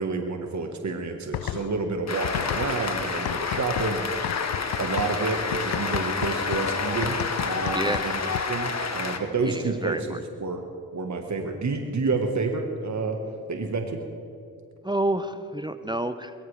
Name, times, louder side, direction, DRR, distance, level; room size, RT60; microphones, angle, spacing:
voice 1, 0.0-4.1 4.4-4.5 4.8-8.2 8.5-10.6 10.9-13.2 13.5-14.0, right 3 dB, 45° right, 4 dB, 1.5 m, -29 dB
sound 1, 1.3-1.9 2.2-8.7, left 13 dB, 65° left, 0.5 m, -34 dB
Cheering / Applause, 2.1-9.2, left 4 dB, 45° left, 1.5 m, -29 dB
voice 2, 7.7-8.1 9.4-10.2 14.8-16.3, right 1 dB, 10° right, 11 dB, 0.7 m, -29 dB
22.0 x 14.0 x 3.4 m, 2.5 s
supercardioid pair, 40°, 38 cm